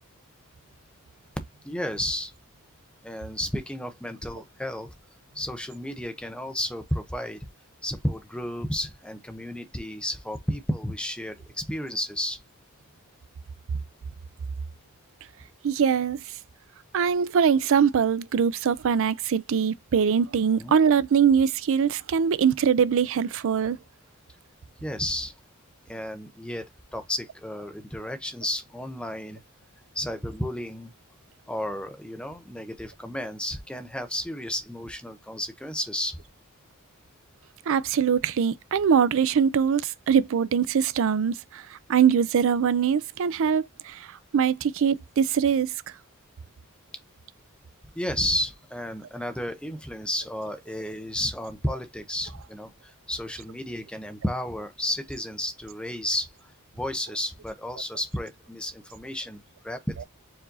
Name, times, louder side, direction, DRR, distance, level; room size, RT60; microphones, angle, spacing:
voice 1, 1.6-2.3 3.0-4.9 5.3-7.5 7.8-12.4 20.6-20.7 24.8-25.3 25.9-29.4 29.9-30.9 31.5-36.2 47.9-56.3 56.7-60.0, left 1 dB, 5° left, 0.6 m, -32 dB
voice 2, 15.6-16.2 16.9-23.8 37.7-44.1 44.3-45.7, right 7 dB, 60° right, 0.4 m, -22 dB
4.7 x 2.5 x 3.9 m
head